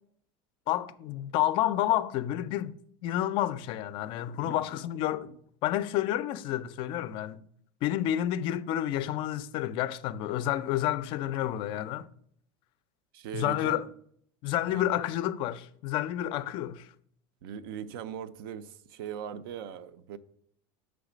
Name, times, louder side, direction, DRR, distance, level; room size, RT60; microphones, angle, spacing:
voice 1, 0.7-7.4 7.8-12.1 13.3-13.9 14.4-16.9, left 12 dB, 45° left, 0.3 m, -30 dB
voice 2, 13.1-13.8 14.7-14.9 17.4-20.2, right 8 dB, 80° right, 0.4 m, -40 dB
6.4 x 3.4 x 5.0 m
supercardioid pair, 145°, 12 cm